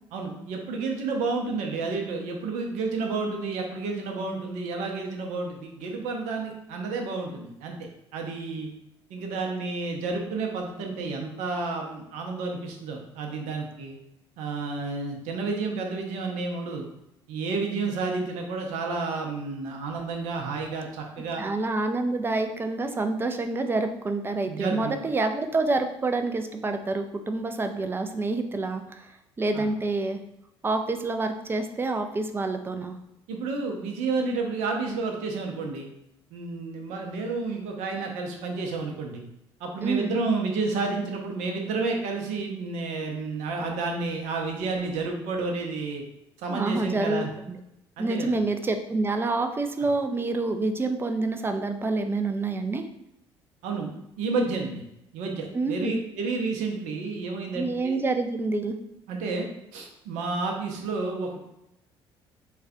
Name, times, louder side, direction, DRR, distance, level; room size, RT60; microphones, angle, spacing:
voice 1, 0.1-7.8 8.1-8.7 9.1-14.0 14.4-16.8 17.3-21.4 24.5-25.0 29.5-29.7 33.3-35.9 36.3-39.2 39.6-46.0 46.4-47.3 48.0-48.4 53.6-53.9 54.2-54.8 55.1-58.0 59.1-59.5 59.7-61.4, right 3 dB, 60° right, 2 dB, 0.6 m, -30 dB
voice 2, 21.4-29.1 29.4-30.2 30.6-33.0 39.8-40.2 46.5-47.6 48.0-52.8 55.5-55.9 57.5-58.8, right 3 dB, 15° right, 6 dB, 0.4 m, -27 dB
3.2 x 2.2 x 3.5 m, 0.83 s
figure-of-eight pair, 50°, 14 cm